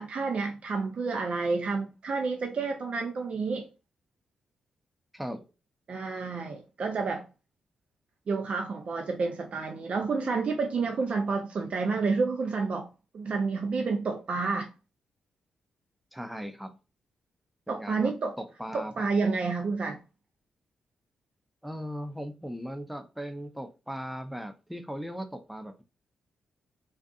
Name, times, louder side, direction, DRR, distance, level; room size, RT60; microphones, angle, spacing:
voice 1, 0.0-3.7 5.9-7.2 8.3-12.9 13.1-14.7 17.7-18.3 18.7-20.0, right 4 dB, 55° right, 0.5 m, -29 dB
voice 2, 16.1-16.8 17.7-18.1 18.4-19.1 21.6-25.8, equal, ahead, 0.6 m, -38 dB
2.5 x 2.4 x 2.3 m
hypercardioid pair, 40°, 2 cm